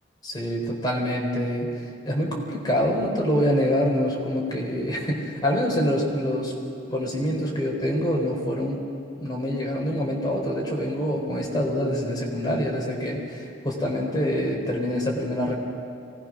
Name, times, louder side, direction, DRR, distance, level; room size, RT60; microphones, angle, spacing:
voice 1, 0.2-1.7 2.1-6.5 6.9-8.8 9.2-15.5, equal, 25° left, -2 dB, 3.9 m, -25 dB
24.0 x 18.5 x 6.2 m, 2.6 s
head